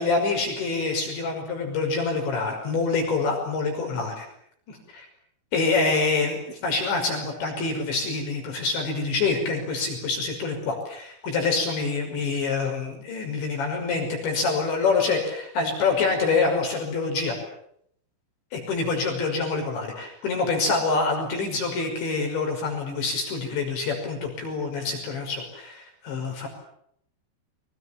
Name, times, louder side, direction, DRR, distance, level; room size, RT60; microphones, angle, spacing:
voice 1, 0.0-4.3 4.7-5.1 5.5-17.4 18.5-26.5, left 4 dB, 60° left, 3 dB, 7.8 m, -26 dB
30.0 x 24.5 x 7.5 m, 0.71 s
omnidirectional pair, 5.8 m